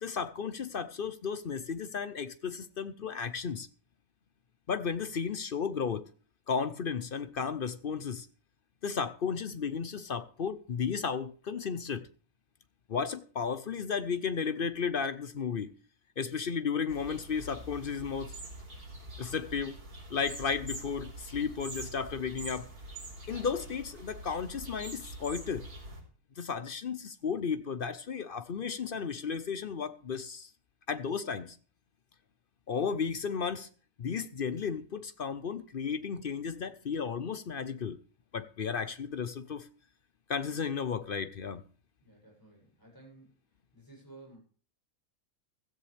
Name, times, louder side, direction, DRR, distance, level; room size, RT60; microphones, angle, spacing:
voice 1, 0.0-3.7 4.7-6.1 6.5-8.3 8.8-12.1 12.9-15.7 16.2-18.4 19.2-19.8 20.1-22.7 23.3-25.7 26.4-30.5 30.9-31.6 32.7-33.7 34.0-38.0 38.3-39.7 40.3-41.6, left 6 dB, 50° left, 0.7 m, -34 dB
sound 1, 16.9-26.0, right 1 dB, 90° right, 4.5 m, -45 dB
voice 2, 42.0-43.3 43.7-44.4, right 2 dB, 15° left, 7.6 m, -54 dB
15.5 x 13.5 x 3.4 m
omnidirectional pair, 1.6 m